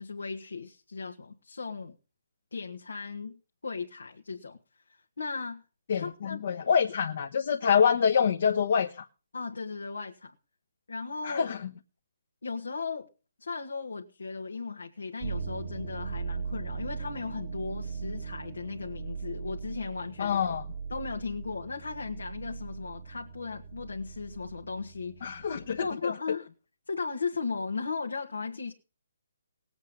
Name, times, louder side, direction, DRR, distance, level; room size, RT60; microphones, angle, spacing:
voice 1, 0.0-2.0 2.5-4.6 4.9-5.6 5.9-6.4 9.3-10.3 10.9-11.6 12.4-13.1 13.4-20.4 20.9-25.4 25.8-26.5 26.9-28.7, left 4 dB, 85° left, 1.6 m, -36 dB
voice 2, 5.9-9.0 11.2-11.6 20.2-20.6 25.2-26.1, left 7 dB, 55° left, 1.1 m, -26 dB
sound 1, 15.2-25.9, right 5 dB, 40° right, 1.1 m, -39 dB
19.0 x 8.1 x 5.4 m
hypercardioid pair, 155°, 0 cm